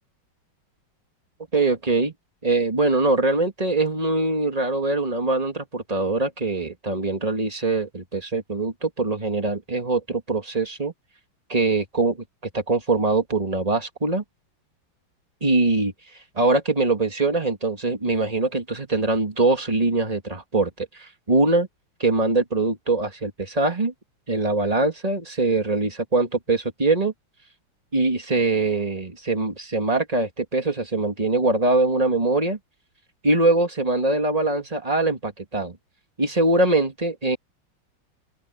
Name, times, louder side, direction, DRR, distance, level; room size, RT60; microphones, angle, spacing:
voice 1, 1.5-2.1 2.4-10.9 11.5-12.2 12.5-14.2 15.4-15.9 16.4-21.7 22.0-23.9 24.3-27.1 27.9-32.6 33.2-35.8 36.2-37.4, right 2 dB, 20° right, 2.5 m, -22 dB
open air
omnidirectional pair, 2.2 m